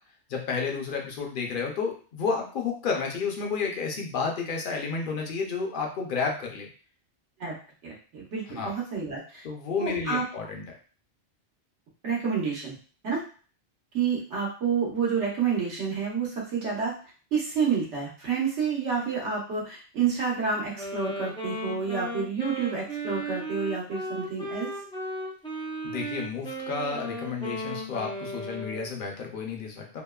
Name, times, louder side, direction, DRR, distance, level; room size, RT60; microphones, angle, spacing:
voice 1, 0.3-6.7 8.5-8.7 9.4-10.7 25.8-30.0, left 5 dB, 55° left, 1 dB, 0.7 m, -31 dB
voice 2, 7.8-9.4 9.8-10.2 12.0-12.7 13.0-13.2 13.9-16.9 17.3-24.7, right 6 dB, 90° right, -4 dB, 1.2 m, -29 dB
Wind instrument woodwind instrument, 20.8-29.0, right 1 dB, 5° left, 0.4 m, -35 dB
2.9 x 2.1 x 2.2 m, 0.40 s
omnidirectional pair, 1.2 m